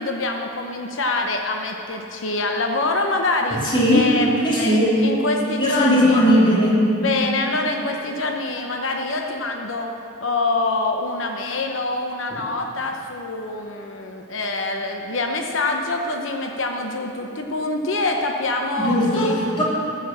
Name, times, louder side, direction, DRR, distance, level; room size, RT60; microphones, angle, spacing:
voice 1, 0.0-3.6 3.9-6.2 7.0-9.9 10.2-19.3, left 2 dB, 85° left, 3 dB, 0.9 m, -25 dB
voice 2, 3.6-4.1 4.4-4.9 5.6-6.8 18.8-19.6, equal, 25° left, -6 dB, 3.0 m, -18 dB
13.5 x 8.3 x 7.3 m, 2.8 s
head